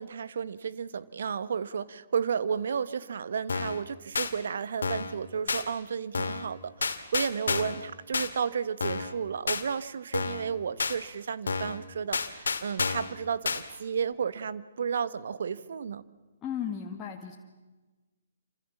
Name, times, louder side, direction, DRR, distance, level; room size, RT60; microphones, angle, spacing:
voice 1, 0.0-16.0, right 6 dB, 60° right, 15 dB, 1.4 m, -32 dB
sound 1, 3.5-3.8 4.2-4.3 4.8-5.1 5.5-5.6 6.1-6.5 6.8-7.8 8.1-8.3 8.8-9.1 9.5-9.6 10.1-10.5 10.8-11.0 11.5-11.8 12.1-13.1 13.5-13.6, left 4 dB, 70° left, 2.4 m, -30 dB
voice 2, 16.4-17.3, left 8 dB, 20° left, -1 dB, 2.3 m, -35 dB
28.0 x 26.5 x 7.3 m, 1.2 s
figure-of-eight pair, 130°, 0 cm